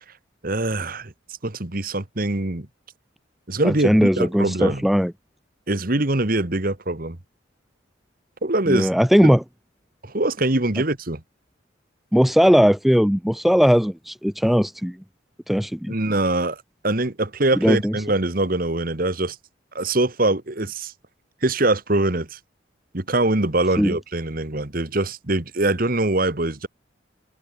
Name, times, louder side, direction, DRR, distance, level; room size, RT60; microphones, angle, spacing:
voice 1, 0.4-1.1 1.4-2.7 3.5-4.8 5.7-7.2 8.4-8.9 9.2-9.3 10.0-11.2 15.9-19.3 19.7-20.9 21.4-22.4 22.9-26.7, right 2 dB, 45° right, 1.7 m, -23 dB
voice 2, 3.6-5.1 8.7-9.4 12.1-15.0 15.5-15.9 17.6-17.9 23.8-23.9, equal, ahead, 0.4 m, -18 dB
head